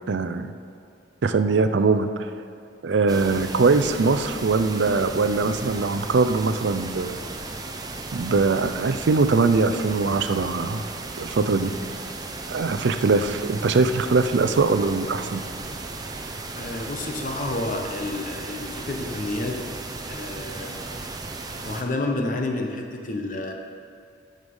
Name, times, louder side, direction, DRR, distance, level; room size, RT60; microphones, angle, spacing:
voice 1, 0.1-0.5 1.2-2.3 2.8-7.2 8.1-10.8 11.2-11.7 12.5-15.4, right 4 dB, 70° right, 10 dB, 0.5 m, -22 dB
sound 1, 3.1-21.8, right 3 dB, 20° right, 0.5 m, -35 dB
voice 2, 16.6-19.6 20.1-20.9 21.6-23.5, left 2 dB, 45° left, 2 dB, 0.9 m, -29 dB
9.6 x 6.6 x 5.4 m, 2.5 s
head